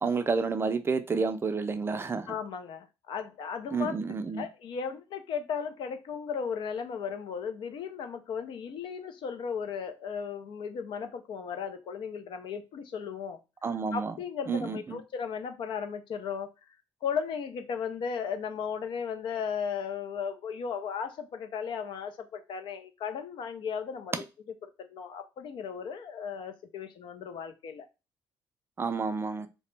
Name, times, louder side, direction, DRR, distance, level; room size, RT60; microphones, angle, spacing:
voice 1, 0.0-2.3 3.7-4.4 13.6-14.1 14.5-15.0 28.8-29.5, right 4 dB, 25° right, 0.4 m, -30 dB
voice 2, 2.3-4.0 4.3-13.4 13.9-16.5 17.0-24.2 24.6-27.9, left 6 dB, 65° left, 0.5 m, -36 dB
2.9 x 2.1 x 3.2 m
cardioid pair, 100°, 9 cm